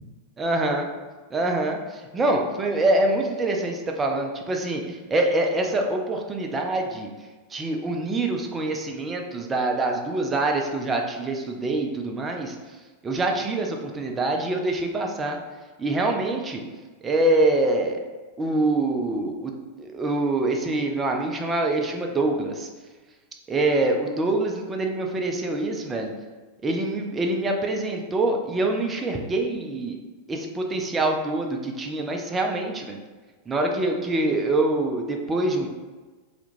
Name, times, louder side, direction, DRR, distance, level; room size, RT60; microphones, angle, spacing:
voice 1, 0.4-0.9 1.3-7.1 7.5-12.6 13.0-15.4 15.8-16.6 17.0-18.0 18.4-19.5 19.8-22.7 23.5-26.1 26.6-30.0 30.3-33.0 33.5-35.7, right 2 dB, 20° right, 2 dB, 0.3 m, -25 dB
2.2 x 2.0 x 3.0 m, 1.3 s
figure-of-eight pair, 90°, 0 cm